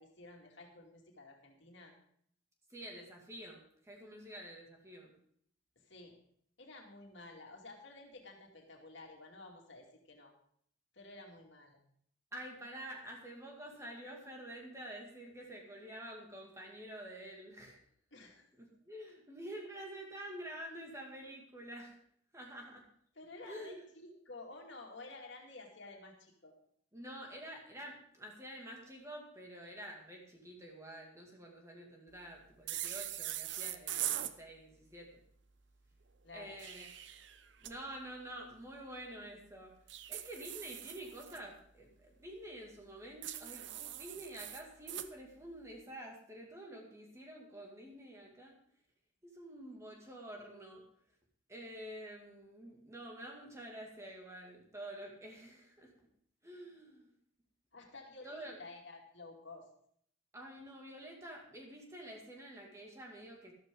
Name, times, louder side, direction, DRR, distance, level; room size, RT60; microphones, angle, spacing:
voice 1, 0.0-1.9 5.8-6.2 6.6-10.3 10.9-11.8 18.1-18.5 23.1-26.6 36.2-36.6 57.7-59.7, left 2 dB, 60° left, 1 dB, 2.6 m, -52 dB
voice 2, 2.7-5.1 12.3-17.8 18.6-22.0 22.3-22.9 23.5-23.8 26.9-35.2 36.3-36.9 37.6-39.7 40.1-48.6 49.2-50.8 51.5-55.9 56.4-57.1 58.2-58.6 60.3-63.5, right 1 dB, 15° right, 0 dB, 2.4 m, -48 dB
sound 1, 32.7-34.3 36.4-37.7 39.9-41.4 43.2-45.1, right 12 dB, 60° right, 0.7 m, -41 dB
13.0 x 13.0 x 3.9 m, 0.64 s
head